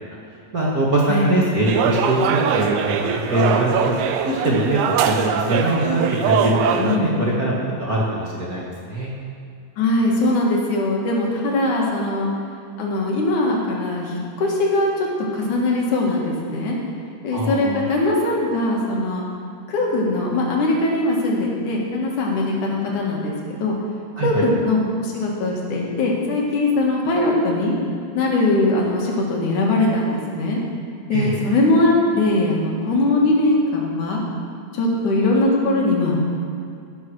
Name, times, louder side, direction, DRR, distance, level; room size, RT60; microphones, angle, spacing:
voice 1, 0.5-4.0 4.2-9.1 17.3-17.9 24.2-24.4 31.1-31.3, right 1 dB, 40° right, -5 dB, 1.4 m, -22 dB
sound 1, 1.7-7.0, right 7 dB, 90° right, 2.2 m, -22 dB
voice 2, 6.8-7.1 9.8-12.3 12.8-15.1 15.3-16.8 17.2-19.2 19.7-23.3 23.6-23.8 24.2-27.8 28.1-30.6 31.1-34.2 34.7-36.2, left 2 dB, 85° left, -2 dB, 3.4 m, -21 dB
17.0 x 6.5 x 6.2 m, 2.4 s
omnidirectional pair, 3.4 m